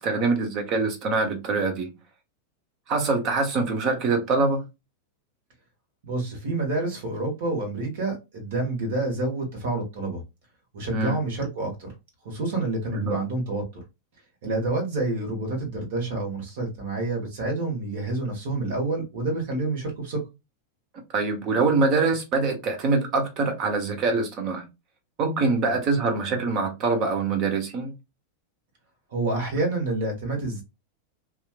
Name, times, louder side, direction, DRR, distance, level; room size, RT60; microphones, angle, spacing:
voice 1, 0.0-1.9 2.9-4.6 10.9-11.2 12.9-13.2 21.1-24.6 25.2-27.9, right 3 dB, 40° right, 0.8 m, -24 dB
voice 2, 6.0-10.2 10.7-11.9 12.2-13.6 14.4-20.2 25.6-25.8 29.1-30.6, right 2 dB, 55° right, 1.4 m, -28 dB
2.9 x 2.4 x 2.3 m
figure-of-eight pair, 90°, 0 cm